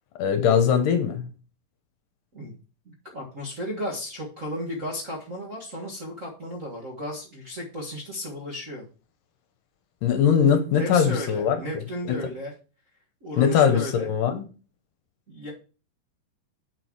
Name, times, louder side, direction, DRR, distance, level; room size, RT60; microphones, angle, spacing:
voice 1, 0.2-1.3 10.0-11.6 12.0-12.1 13.4-14.4, left 7 dB, 75° left, 7 dB, 2.4 m, -21 dB
voice 2, 2.8-8.8 10.8-12.5 13.2-14.1 15.3-15.5, equal, 60° right, -3 dB, 0.8 m, -34 dB
8.0 x 6.1 x 4.6 m, 0.36 s
omnidirectional pair, 4.1 m